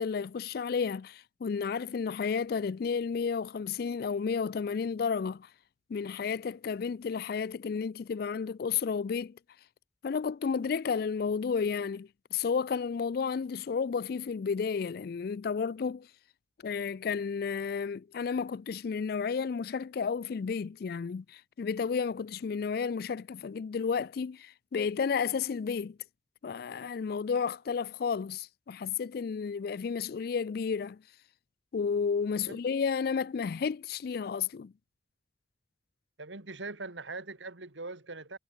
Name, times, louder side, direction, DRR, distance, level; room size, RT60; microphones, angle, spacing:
voice 1, 0.0-5.5 5.9-9.4 10.0-16.1 16.6-26.0 26.4-31.0 31.7-34.7, left 6 dB, 55° left, 0.3 m, -32 dB
voice 2, 36.2-38.4, right 3 dB, 85° right, 2.6 m, -41 dB
head